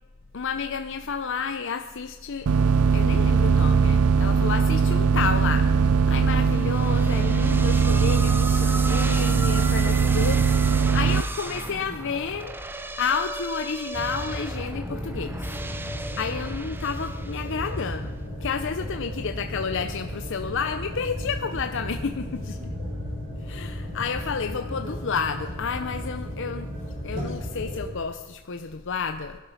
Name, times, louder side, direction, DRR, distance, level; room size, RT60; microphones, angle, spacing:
voice 1, 0.3-2.5 2.9-12.6 13.0-18.1 18.4-22.5 23.4-26.7 27.0-29.4, left 5 dB, 60° left, 7 dB, 0.7 m, -31 dB
sound 1, 2.5-11.2, right 5 dB, 90° right, 0.5 m, -20 dB
sound 2, 6.5-17.8, right 2 dB, 10° right, 0.7 m, -36 dB
sound 3, 13.9-27.9, equal, 40° right, 7.2 m, -34 dB
19.5 x 12.0 x 5.8 m, 1.3 s
head